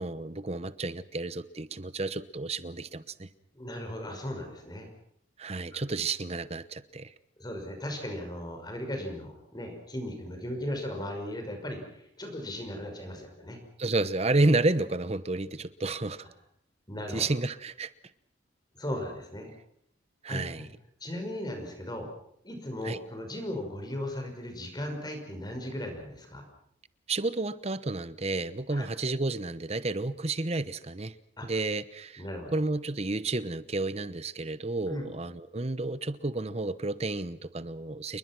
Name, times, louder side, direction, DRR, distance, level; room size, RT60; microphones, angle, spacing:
voice 1, 0.0-3.3 5.4-7.1 13.8-16.3 17.1-17.9 20.2-20.8 22.8-23.0 27.1-31.1 31.4-32.2 32.5-38.2, right 2 dB, 35° right, 15 dB, 0.9 m, -31 dB
voice 2, 3.5-4.9 7.4-13.6 16.9-17.2 18.8-19.5 20.3-20.7 21.0-22.1 22.4-26.4 28.7-28.9 31.4-31.5 32.2-32.6 34.9-35.1, left 1 dB, 20° left, 4 dB, 5.6 m, -37 dB
29.0 x 22.0 x 6.1 m, 0.70 s
head